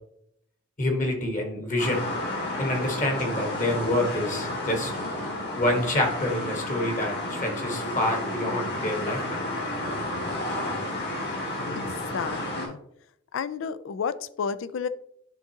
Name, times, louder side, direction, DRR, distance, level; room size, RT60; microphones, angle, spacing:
voice 1, 0.8-2.0 2.6-4.9 5.6-9.4, left 1 dB, 40° left, 2 dB, 1.3 m, -27 dB
sound 1, 1.8-12.7, left 1 dB, 55° left, 2.0 m, -31 dB
voice 2, 11.8-12.8 13.3-14.9, left 6 dB, 80° left, 15 dB, 0.4 m, -31 dB
10.5 x 3.6 x 2.8 m, 0.73 s
head